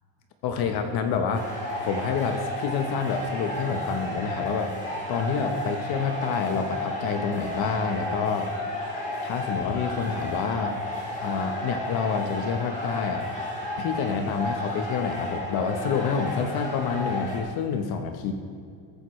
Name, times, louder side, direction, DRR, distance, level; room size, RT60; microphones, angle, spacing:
voice 1, 0.4-4.7 5.1-8.5 9.2-10.8 11.2-13.3 13.8-18.3, left 6 dB, 55° left, 6 dB, 1.0 m, -28 dB
sound 1, 1.3-17.4, left 1 dB, 15° left, 2.5 m, -32 dB
20.5 x 9.4 x 3.2 m, 2.3 s
cardioid pair, 165°, 44 cm